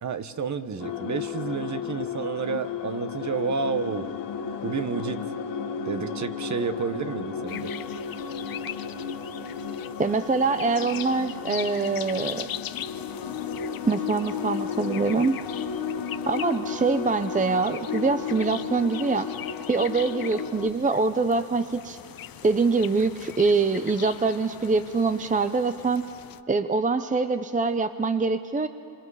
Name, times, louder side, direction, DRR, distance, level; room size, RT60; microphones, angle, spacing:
voice 1, 0.0-4.1 4.6-5.3 5.8-7.7, right 5 dB, 40° right, 10 dB, 1.2 m, -30 dB
sound 1, 0.8-20.7, left 6 dB, 75° left, 1.4 m, -34 dB
sound 2, 7.5-26.4, left 11 dB, 55° left, 0.8 m, -41 dB
voice 2, 10.0-12.5 13.8-15.4 16.3-19.3 19.7-22.0 22.4-26.0 26.5-28.7, right 4 dB, 20° right, 10 dB, 0.7 m, -24 dB
26.5 x 26.0 x 4.9 m, 2.7 s
cardioid pair, 75°, 42 cm